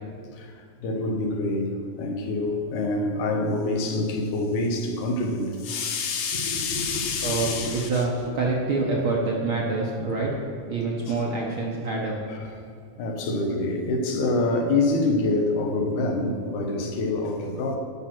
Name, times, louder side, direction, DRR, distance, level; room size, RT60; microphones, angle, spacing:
voice 1, 0.3-8.3 11.1-11.2 12.3-12.5 13.0-17.8, left 2 dB, 80° left, 3 dB, 2.6 m, -26 dB
voice 2, 7.2-10.3 10.7-12.1 12.4-12.5, right 3 dB, 60° right, -2 dB, 1.4 m, -26 dB
11.5 x 6.0 x 5.9 m, 2.4 s
omnidirectional pair, 3.5 m